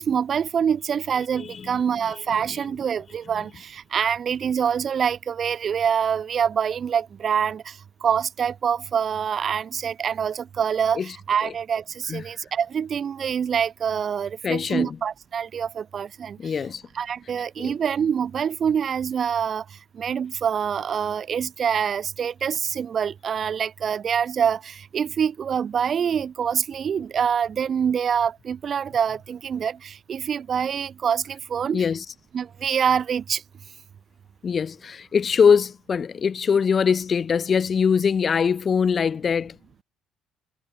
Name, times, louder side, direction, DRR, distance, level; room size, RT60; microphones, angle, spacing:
voice 1, 0.0-16.5 16.9-31.8 32.3-33.4, right 7 dB, 35° right, 1.3 m, -25 dB
voice 2, 1.3-1.7 2.1-2.2 10.9-11.1 11.4-11.5 12.1-12.2 14.4-15.0 16.4-16.8 17.6-17.7 31.7-32.0 34.4-39.6, left 6 dB, 30° left, 2.1 m, -22 dB
cardioid pair, 165°, 0 cm